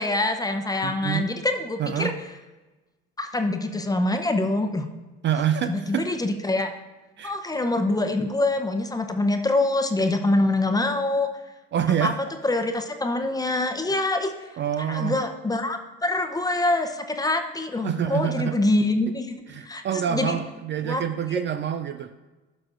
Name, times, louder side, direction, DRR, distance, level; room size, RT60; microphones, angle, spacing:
voice 1, 0.0-2.1 3.2-4.8 5.6-6.7 7.2-11.3 12.0-12.1 12.4-14.3 14.9-19.4 19.6-19.8 20.1-20.3 20.8-21.0 21.3-21.4, left 2 dB, 10° left, 6 dB, 0.7 m, -25 dB
voice 2, 0.8-1.3 1.8-2.2 5.2-6.2 7.2-7.4 11.7-12.2 14.6-15.2 17.8-18.6 19.5-22.1, right 9 dB, 40° right, 10 dB, 0.4 m, -26 dB
11.5 x 6.0 x 2.5 m, 1.2 s
supercardioid pair, 75°, 29 cm